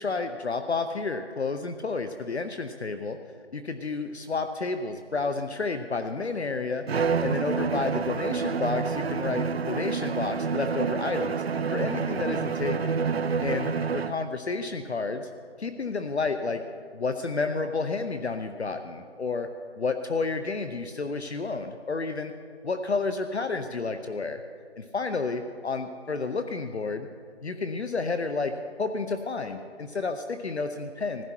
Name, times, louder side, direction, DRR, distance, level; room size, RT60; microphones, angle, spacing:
voice 1, 0.0-3.2 3.5-6.8 7.2-11.4 11.7-13.0 13.4-15.3 15.6-16.6 16.9-19.5 19.8-22.3 22.6-24.4 24.8-27.1 27.4-28.5 28.8-31.2, left 4 dB, 60° left, 7 dB, 0.9 m, -30 dB
Bowed string instrument, 6.9-14.3, right 5 dB, 60° right, 0.5 m, -28 dB
20.0 x 15.5 x 4.6 m, 2.2 s
figure-of-eight pair, 180°, 36 cm